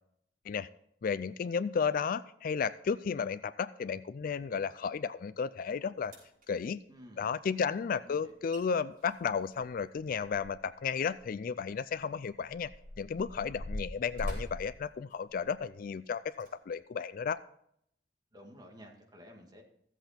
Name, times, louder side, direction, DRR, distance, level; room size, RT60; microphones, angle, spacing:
voice 1, 1.0-6.1 6.5-6.8 7.2-12.7 13.0-17.4, left 6 dB, 55° left, 16 dB, 0.4 m, -33 dB
sound 1, 6.0-6.5 8.2-8.3 8.5-8.6 9.0-10.8 11.1-11.2 11.9-15.7 16.3-16.5 17.1-17.2, equal, 50° right, 5.2 m, -42 dB
voice 2, 6.9-7.3 8.0-8.3 18.3-19.6, equal, 25° right, 1 dB, 2.0 m, -53 dB
14.5 x 8.0 x 4.4 m, 0.71 s
head